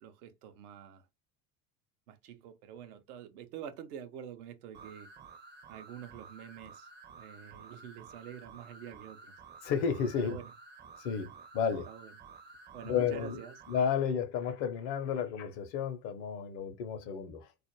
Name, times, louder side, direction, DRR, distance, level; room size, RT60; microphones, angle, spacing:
voice 1, 0.0-1.1 2.1-5.1 5.7-6.9 7.2-9.3 10.2-10.5 11.7-12.1 12.7-13.5, right 9 dB, 75° right, 0.7 m, -47 dB
sound 1, 4.7-14.0, right 4 dB, 25° right, 0.5 m, -52 dB
voice 2, 9.6-10.4 11.0-11.9 12.8-13.4 13.7-17.5, left 7 dB, 60° left, 0.7 m, -32 dB
2.4 x 2.1 x 3.0 m
hypercardioid pair, 65°, 46 cm